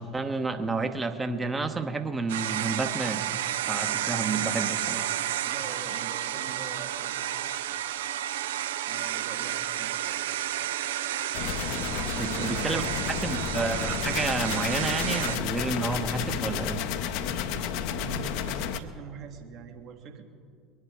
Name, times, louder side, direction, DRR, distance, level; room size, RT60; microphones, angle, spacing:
voice 1, 0.0-3.3 3.7-5.1 12.2-12.8 13.2-16.8, right 3 dB, 20° right, 8 dB, 0.9 m, -30 dB
sound 1, 2.3-15.4, right 12 dB, 65° right, 0.4 m, -31 dB
voice 2, 5.4-7.1 8.8-9.9 11.5-13.0 17.9-20.2, right 7 dB, 45° right, 5 dB, 1.4 m, -43 dB
sound 2, 11.3-18.8, left 8 dB, 55° left, 0.7 m, -31 dB
22.5 x 9.9 x 4.8 m, 2.3 s
figure-of-eight pair, 70°, 0 cm